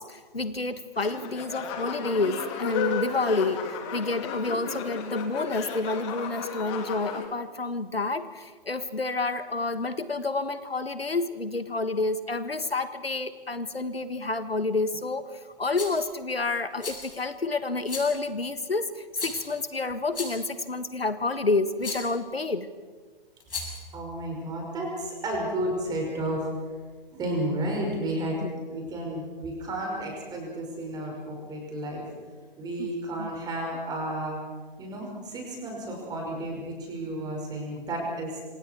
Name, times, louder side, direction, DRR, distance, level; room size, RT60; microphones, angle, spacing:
voice 1, 0.0-22.7 28.4-28.5 32.8-32.9 33.2-33.3, left 3 dB, 85° left, 12 dB, 1.6 m, -29 dB
sound 1, 1.0-7.3, left 6 dB, 30° left, 2.6 m, -34 dB
Rattle, 15.7-16.0 16.8-17.2 17.9-18.2 19.2-19.6 20.1-20.5 21.8-22.1 23.4-23.9, left 4 dB, 70° left, 7.7 m, -36 dB
voice 2, 23.9-26.5 27.2-28.4 28.7-32.0 32.6-34.4 34.8-38.4, right 1 dB, 15° right, -1 dB, 5.6 m, -32 dB
26.5 x 26.5 x 4.6 m, 1.4 s
figure-of-eight pair, 130°, 29 cm